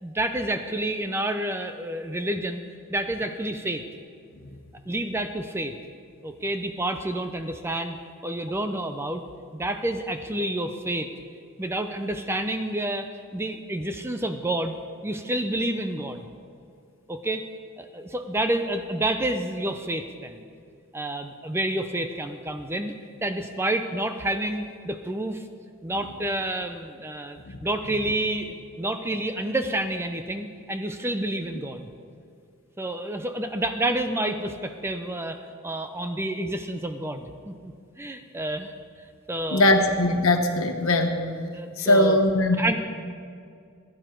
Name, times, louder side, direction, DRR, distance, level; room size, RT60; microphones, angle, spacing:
voice 1, 0.0-2.6 2.9-3.8 4.9-5.8 6.2-8.0 8.2-9.2 9.5-11.1 11.6-14.8 15.0-16.3 17.1-17.4 17.8-20.4 20.9-22.9 23.2-25.4 25.8-31.9 32.8-38.7 39.3-39.7 41.5-42.2 42.6-42.8, right 1 dB, 10° right, 7 dB, 0.5 m, -29 dB
voice 2, 39.5-41.2 41.8-42.6, left 1 dB, 65° left, 5 dB, 1.3 m, -20 dB
16.5 x 11.0 x 4.5 m, 2.3 s
head